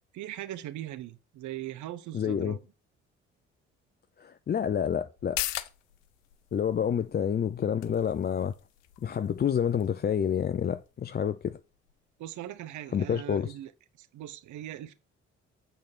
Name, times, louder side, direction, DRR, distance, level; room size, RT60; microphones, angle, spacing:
voice 1, 0.1-2.6 12.2-13.7 14.0-14.9, right 13 dB, 55° right, 0.9 m, -40 dB
voice 2, 2.1-2.6 4.2-5.4 6.5-8.5 9.0-11.6 12.9-13.6, left 8 dB, 30° left, 0.5 m, -28 dB
sound 1, 5.2-12.3 12.6-12.7, left 15 dB, 70° left, 0.6 m, -42 dB
8.4 x 4.0 x 6.2 m
figure-of-eight pair, 45°, 35 cm